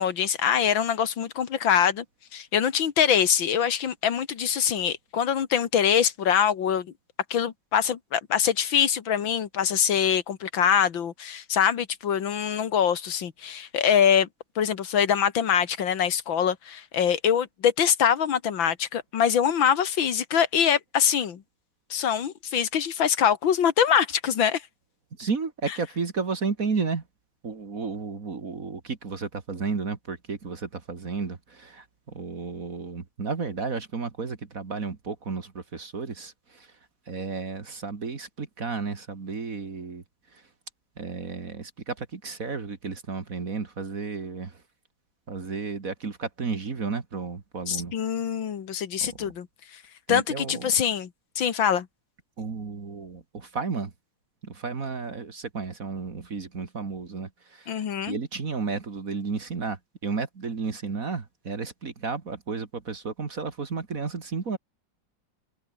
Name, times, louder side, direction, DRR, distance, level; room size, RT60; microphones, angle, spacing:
voice 1, 0.0-2.0 2.3-6.9 7.3-14.3 14.6-21.4 21.9-24.6 47.7-49.5 50.1-51.1 51.4-51.9 57.7-58.2, left 8 dB, 85° left, 2.3 m, -24 dB
voice 2, 25.2-27.0 27.4-36.7 37.1-40.0 40.3-40.4 41.0-44.6 45.3-48.0 49.0-49.3 50.1-50.7 52.4-53.9 54.4-64.6, right 4 dB, 45° right, 2.4 m, -33 dB
omnidirectional pair, 2.1 m